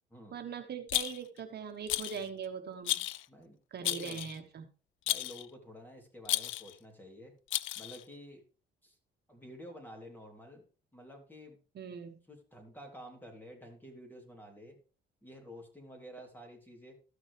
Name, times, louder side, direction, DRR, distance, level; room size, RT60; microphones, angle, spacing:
voice 1, 0.3-3.0 3.7-4.7 11.7-12.2, right 6 dB, 55° right, 6 dB, 1.1 m, -41 dB
Rattle, 0.9-1.4 1.9-2.3 2.8-3.2 3.8-4.4 5.1-5.4 6.2-6.7 7.5-8.0, left 15 dB, 75° left, 0.4 m, -33 dB
voice 2, 3.3-4.3 5.1-7.3 7.7-8.4 8.8-9.0 9.3-10.7 10.9-11.6 12.3-14.8 15.2-16.9, equal, 10° left, 2 dB, 3.1 m, -50 dB
13.5 x 6.2 x 3.3 m, 0.37 s
cardioid pair, 90°, 20 cm